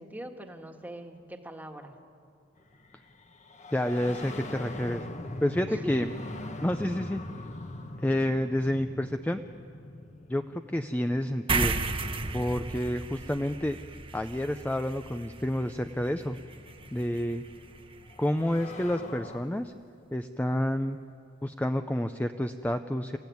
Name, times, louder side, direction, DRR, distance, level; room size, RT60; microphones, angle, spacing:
voice 1, 0.0-1.9 5.7-6.1, right 1 dB, 10° right, 4 dB, 1.6 m, -42 dB
sound 1, 2.7-13.3 14.5-14.6 15.7-19.4, left 1 dB, 40° left, 1.3 m, -43 dB
voice 2, 3.7-5.0 5.4-6.1 6.6-7.2 8.0-9.4 10.3-11.7 12.3-13.8 14.1-16.4 16.9-17.4 18.2-19.7 20.1-21.0 21.4-23.2, left 1 dB, 10° left, 8 dB, 0.5 m, -29 dB
sound 2, 11.5-18.3, right 3 dB, 30° right, 1.1 m, -35 dB
29.5 x 15.5 x 9.4 m, 2.5 s
head